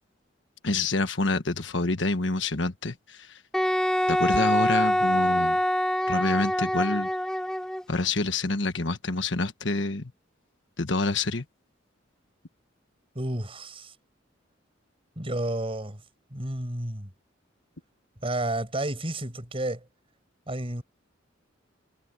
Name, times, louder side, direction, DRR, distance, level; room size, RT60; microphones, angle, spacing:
voice 1, 0.6-3.4 4.1-5.6 6.1-7.1 7.9-10.1 10.8-11.4, left 3 dB, 70° left, 1.4 m, -27 dB
Wind instrument woodwind instrument, 3.5-7.8, equal, 5° left, 3.4 m, -25 dB
voice 2, 13.1-13.9 15.2-16.0 16.3-17.1 18.2-19.9 20.5-20.8, right 1 dB, 30° right, 5.8 m, -31 dB
head